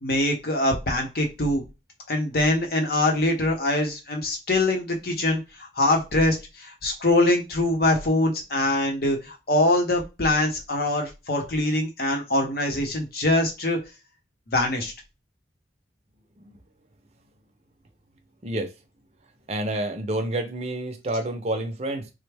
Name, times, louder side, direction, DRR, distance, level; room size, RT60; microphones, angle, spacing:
voice 1, 0.0-1.6 2.1-13.8 14.5-14.9, left 1 dB, 55° left, 0.8 m, -23 dB
voice 2, 19.5-22.1, right 1 dB, 35° right, 0.6 m, -29 dB
3.3 x 2.1 x 3.3 m
head